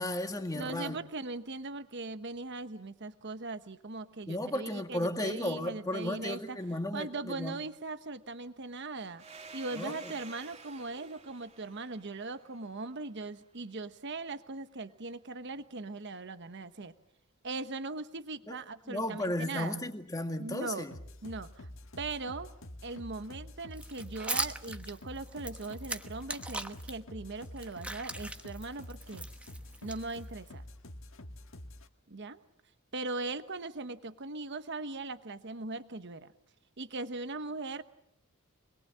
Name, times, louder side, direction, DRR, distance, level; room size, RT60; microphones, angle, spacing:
voice 1, 0.0-1.0 4.3-7.6 9.7-10.1 18.5-18.6 18.9-20.9, left 1 dB, 15° left, 1.9 m, -34 dB
voice 2, 0.5-6.6 6.9-16.9 17.4-19.8 20.4-20.9 21.2-21.7 22.0-22.5 22.8-29.3 29.8-30.6 32.1-32.4 32.9-36.3 36.8-37.8, right 3 dB, 55° right, 1.1 m, -40 dB
Domestic sounds home sounds, 9.2-13.6, right 4 dB, 30° right, 2.6 m, -51 dB
sound 1, 20.9-31.9, left 1 dB, 65° left, 1.6 m, -47 dB
sound 2, 23.7-26.9 27.4-30.5, right 2 dB, 5° right, 1.1 m, -39 dB
26.5 x 21.0 x 7.5 m
head